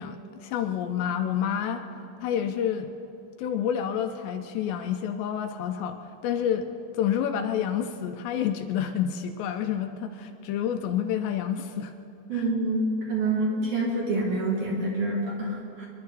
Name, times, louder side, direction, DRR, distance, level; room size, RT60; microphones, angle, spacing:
voice 1, 0.0-1.8 2.2-2.9 3.4-11.9 12.3-12.4, left 9 dB, 80° left, 6 dB, 2.8 m, -29 dB
voice 2, 12.3-15.9, right 2 dB, 50° right, -4 dB, 3.4 m, -27 dB
25.0 x 11.5 x 4.0 m, 2.7 s
omnidirectional pair, 5.2 m